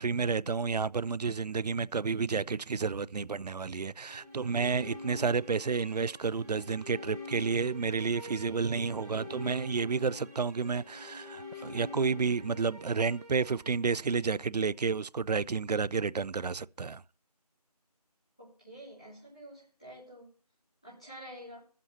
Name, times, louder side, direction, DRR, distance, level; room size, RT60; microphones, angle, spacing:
voice 1, 0.0-17.0, right 5 dB, 90° right, 0.4 m, -31 dB
sound 1, 4.0-14.2, left 3 dB, 25° right, 2.2 m, -46 dB
voice 2, 18.4-20.3 20.8-21.6, equal, 10° left, 1.4 m, -48 dB
18.0 x 7.5 x 2.8 m
figure-of-eight pair, 175°, 20 cm